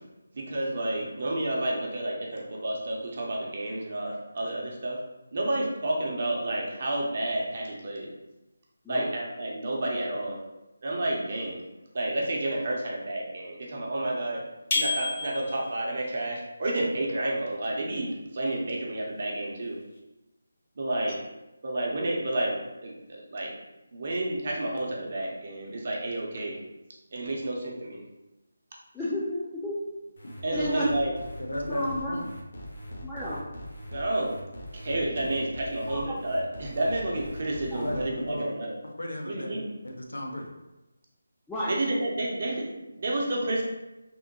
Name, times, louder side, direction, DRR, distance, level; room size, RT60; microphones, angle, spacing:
voice 1, 0.3-5.0 5.3-8.1 8.9-10.4 10.8-11.6 11.9-14.4 14.7-19.8 20.8-21.1 21.6-22.6 22.8-23.5 23.9-26.6 27.1-28.0 30.4-31.1 33.9-34.3 34.7-38.7 39.2-39.6 41.7-43.6, right 1 dB, 50° right, -2 dB, 0.7 m, -30 dB
sound 1, 14.7-15.8, left 3 dB, 35° left, 0.7 m, -29 dB
voice 2, 28.9-29.8 30.5-30.9 31.7-32.1 33.0-33.4 35.9-36.0 37.7-37.8 41.5-41.7, equal, 5° left, -10 dB, 0.4 m, -31 dB
sound 2, 30.2-38.0, equal, 60° left, 0.8 m, -41 dB
voice 3, 31.4-32.3 37.8-38.5 38.8-39.6 39.8-40.5, left 1 dB, 90° left, 1 dB, 0.7 m, -34 dB
3.5 x 2.1 x 2.9 m, 1.0 s
figure-of-eight pair, 160°, 0 cm